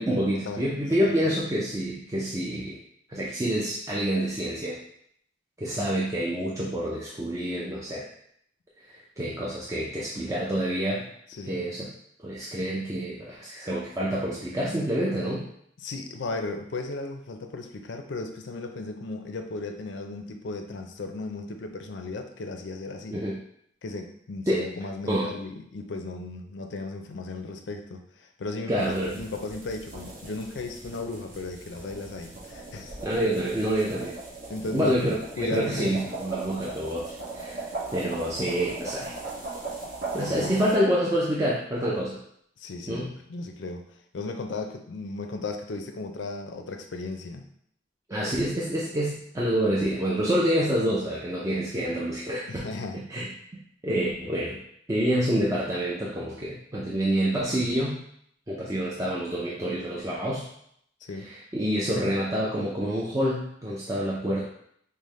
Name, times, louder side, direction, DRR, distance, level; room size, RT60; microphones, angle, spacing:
voice 1, 0.0-2.8 3.1-4.8 5.6-8.1 8.9-11.1 11.4-11.9 12.2-15.4 23.1-23.4 24.5-24.7 25.1-25.3 28.7-29.2 33.0-34.2 34.7-39.1 40.1-42.2 42.9-43.1 48.1-52.6 53.1-53.3 53.8-54.6 54.9-58.0 58.5-60.5 61.2-64.4, equal, 20° right, -5 dB, 0.5 m, -27 dB
voice 2, 1.0-1.3 11.3-11.6 15.8-23.3 23.8-33.0 34.5-35.9 40.3-40.5 42.6-43.8 44.1-47.4 52.5-53.0 61.1-61.3, left 3 dB, 75° left, 5 dB, 0.5 m, -36 dB
Shaking a Palmtree, 28.8-40.8, right 3 dB, 50° right, 0.9 m, -39 dB
5.3 x 2.1 x 3.1 m, 0.69 s
head